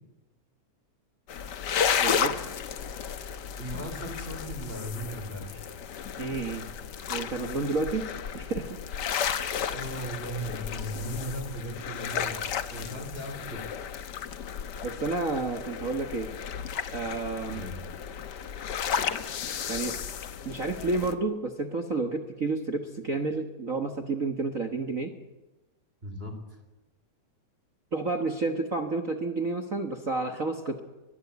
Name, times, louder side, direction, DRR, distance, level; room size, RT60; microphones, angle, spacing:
sound 1, 1.3-21.1, left 8 dB, 90° left, 0.9 m, -33 dB
voice 1, 2.0-2.4 6.2-6.7 7.1-8.8 14.8-16.3 16.9-17.6 19.7-20.0 20.4-25.1 27.9-30.8, right 3 dB, 50° right, 9 dB, 0.9 m, -30 dB
voice 2, 3.6-5.7 9.6-13.7 17.5-17.8 26.0-26.4, right 1 dB, 20° right, 6 dB, 3.4 m, -37 dB
23.0 x 21.0 x 8.2 m, 1.1 s
omnidirectional pair, 3.5 m